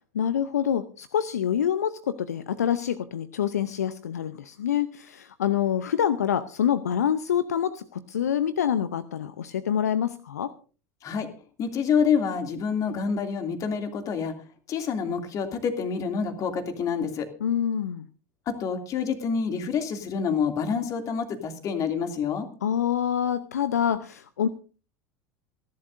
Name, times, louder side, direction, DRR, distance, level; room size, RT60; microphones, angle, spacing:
voice 1, 0.1-10.5 17.4-18.1 22.6-24.5, left 9 dB, 75° left, 15 dB, 0.7 m, -26 dB
voice 2, 11.6-14.3 14.7-17.3 18.5-22.5, left 6 dB, 40° left, 6 dB, 2.6 m, -27 dB
27.5 x 11.5 x 2.6 m, 0.38 s
figure-of-eight pair, 75°, 9 cm